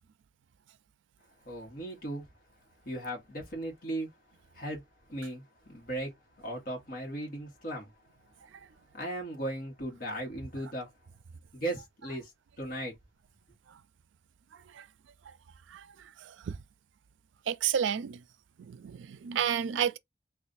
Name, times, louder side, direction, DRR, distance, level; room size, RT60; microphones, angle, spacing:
voice 1, 1.5-2.2 2.8-4.1 4.5-4.8 5.1-5.4 5.7-6.1 6.4-7.9 8.9-10.9 11.5-12.3 12.6-12.9, right 1 dB, 50° left, 1.3 m, -37 dB
voice 2, 16.2-16.6 17.5-18.2 18.6-20.0, right 8 dB, 80° right, 0.4 m, -31 dB
3.2 x 2.4 x 3.9 m
head